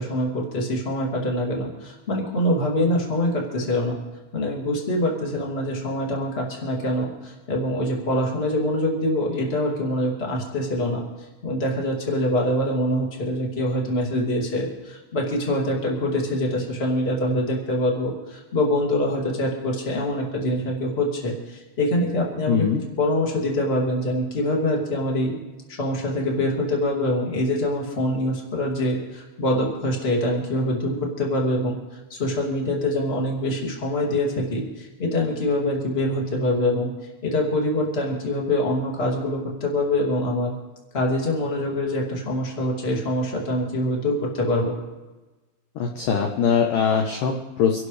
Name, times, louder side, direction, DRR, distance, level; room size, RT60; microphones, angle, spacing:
voice 1, 0.0-4.0 4.3-11.0 11.4-22.7 23.0-25.4 25.8-36.9 37.2-40.5 40.9-44.7, left 1 dB, 20° left, -1 dB, 1.7 m, -24 dB
voice 2, 22.5-22.8 45.8-47.9, left 6 dB, 80° left, 3 dB, 1.9 m, -22 dB
27.5 x 11.5 x 3.3 m, 1.2 s
omnidirectional pair, 5.4 m